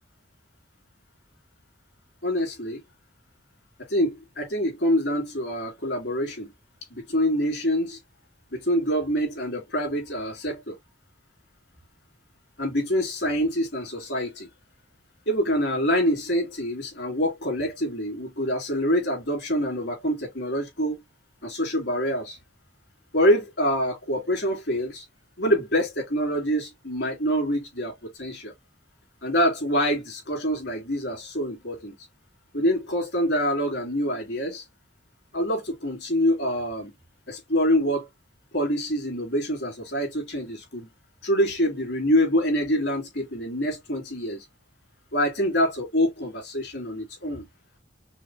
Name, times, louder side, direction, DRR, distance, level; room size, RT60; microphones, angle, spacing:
voice 1, 2.2-2.8 3.9-6.5 6.9-8.0 8.5-10.8 12.6-14.5 15.3-21.0 21.4-22.4 23.1-25.0 25.4-28.5 29.2-31.9 32.5-34.6 35.3-36.9 37.3-38.1 38.5-40.9 41.2-44.4 45.1-47.4, equal, 65° left, 2.8 m, -25 dB
5.6 x 2.7 x 2.8 m
head